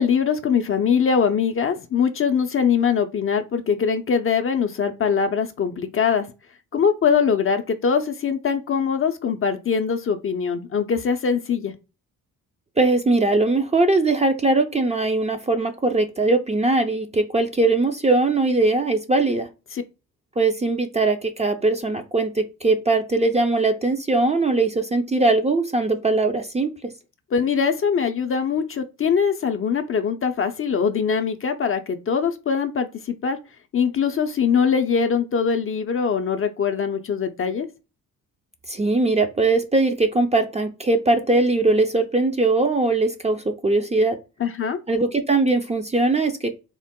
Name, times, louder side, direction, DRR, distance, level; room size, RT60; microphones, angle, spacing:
voice 1, 0.0-6.3 6.7-11.7 19.7-19.8 27.3-33.4 33.7-37.7 44.4-44.8, left 6 dB, 30° left, 0.5 m, -22 dB
voice 2, 12.8-19.5 20.4-26.7 38.7-44.2 44.9-46.5, right 2 dB, 15° right, 0.5 m, -20 dB
3.8 x 2.0 x 3.6 m
hypercardioid pair, 50°, 41 cm